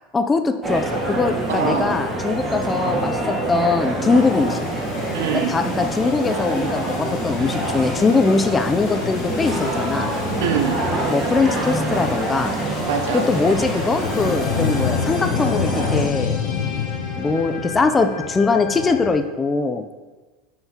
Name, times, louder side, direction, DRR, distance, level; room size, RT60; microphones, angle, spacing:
voice 1, 0.1-4.7 5.3-10.1 11.1-12.6 13.1-16.4 17.2-19.9, left 4 dB, 15° left, 8 dB, 0.4 m, -21 dB
sound 1, 0.6-16.1, right 1 dB, 20° right, 1.2 m, -25 dB
voice 2, 1.5-2.0 5.1-5.6 10.4-10.8 12.8-13.3, right 7 dB, 90° right, 6 dB, 0.7 m, -24 dB
sound 2, 4.1-19.1, left 3 dB, 35° left, 1.5 m, -36 dB
sound 3, 7.2-19.3, left 8 dB, 90° left, 0.6 m, -30 dB
7.5 x 5.6 x 2.9 m, 1.2 s
supercardioid pair, 140°, 0 cm